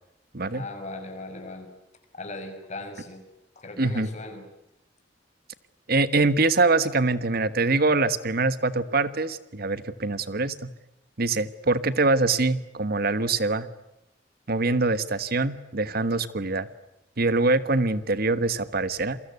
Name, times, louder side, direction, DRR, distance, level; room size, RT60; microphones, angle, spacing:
voice 1, 0.5-1.7 2.1-3.2 3.6-4.4, left 2 dB, 40° left, 5 dB, 6.1 m, -38 dB
voice 2, 3.8-4.1 5.9-10.7 11.2-13.7 14.5-16.7 17.2-19.2, right 3 dB, 55° right, 14 dB, 1.3 m, -24 dB
28.5 x 23.5 x 8.1 m, 0.90 s
head